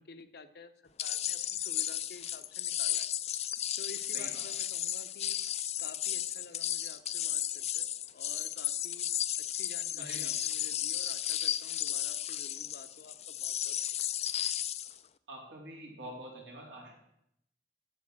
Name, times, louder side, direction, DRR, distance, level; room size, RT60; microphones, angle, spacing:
voice 1, 0.0-3.1 3.8-5.4 5.8-9.1 9.4-13.8, left 3 dB, 60° left, 10 dB, 0.7 m, -51 dB
sound 1, 1.0-15.0, left 11 dB, 40° left, 0.4 m, -34 dB
voice 2, 9.9-10.3 15.3-16.9, right 1 dB, 80° right, -1 dB, 3.3 m, -46 dB
8.6 x 7.1 x 7.4 m, 0.77 s
head